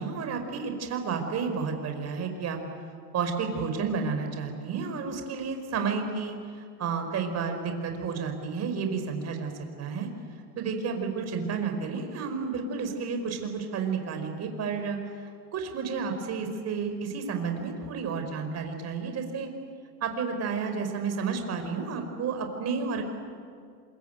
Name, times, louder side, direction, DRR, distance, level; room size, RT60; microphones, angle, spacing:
voice 1, 0.0-2.6 3.1-6.4 6.8-9.5 9.8-10.1 10.6-15.0 15.5-19.5 20.0-23.1, right 5 dB, 35° right, 5 dB, 4.7 m, -31 dB
26.5 x 23.0 x 9.1 m, 2.3 s
supercardioid pair, 115°, 45 cm